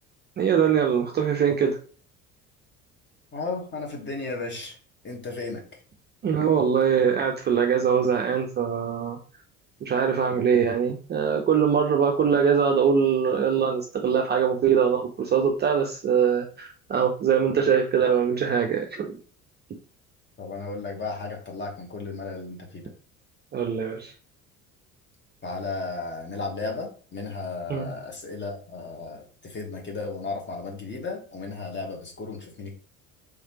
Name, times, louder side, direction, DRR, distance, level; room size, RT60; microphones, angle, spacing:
voice 1, 0.4-1.8 6.2-9.2 9.8-19.2 23.5-24.1 27.7-27.9, right 7 dB, 25° right, 2 dB, 0.5 m, -22 dB
voice 2, 3.3-4.8 5.0-5.6 20.4-22.9 25.4-32.8, left 3 dB, 25° left, 2 dB, 1.3 m, -34 dB
3.5 x 3.2 x 2.9 m, 0.40 s
figure-of-eight pair, 60°, 42 cm